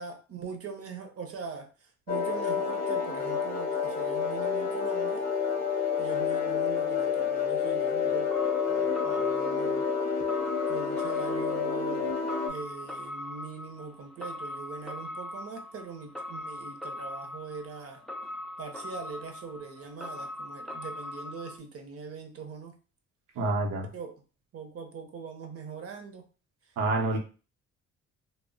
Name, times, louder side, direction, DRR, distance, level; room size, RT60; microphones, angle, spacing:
voice 1, 0.0-5.3 6.0-8.4 8.7-9.9 10.7-12.2 12.5-18.0 18.6-22.8 23.9-24.1 24.5-26.3, right 5 dB, 50° right, 5 dB, 0.7 m, -42 dB
sound 1, 2.1-12.5, left 6 dB, 30° left, 0.7 m, -29 dB
sound 2, 8.3-21.6, left 1 dB, ahead, 0.4 m, -41 dB
voice 2, 23.4-23.9 26.8-27.2, right 2 dB, 90° right, 1 dB, 0.8 m, -27 dB
2.1 x 2.0 x 3.7 m, 0.35 s
cardioid pair, 90°, 30 cm